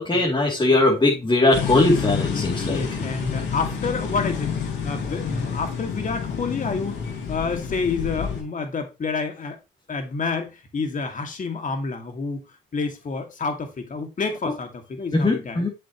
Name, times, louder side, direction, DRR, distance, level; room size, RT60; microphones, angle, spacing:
voice 1, 0.0-2.8 15.1-15.7, left 2 dB, 25° left, 3.0 m, -20 dB
sound 1, 1.5-8.4, left 6 dB, 70° left, 4.9 m, -28 dB
voice 2, 2.2-9.6 9.9-12.4 12.7-15.7, left 4 dB, 40° left, 2.4 m, -29 dB
7.5 x 7.5 x 3.1 m
cardioid pair, 75°, 20 cm